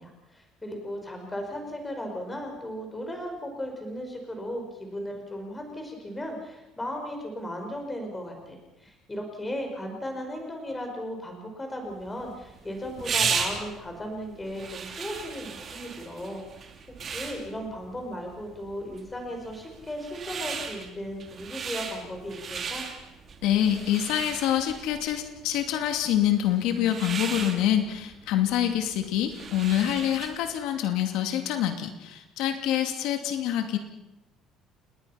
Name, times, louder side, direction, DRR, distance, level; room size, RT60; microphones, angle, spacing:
voice 1, 0.0-16.7 17.0-22.9, equal, 10° left, 3 dB, 5.1 m, -36 dB
sound 1, 12.0-30.5, right 6 dB, 30° right, 3.0 m, -36 dB
voice 2, 23.4-33.8, left 11 dB, 75° left, 6 dB, 2.5 m, -26 dB
29.5 x 20.5 x 5.8 m, 0.91 s
cardioid pair, 180°, 0 cm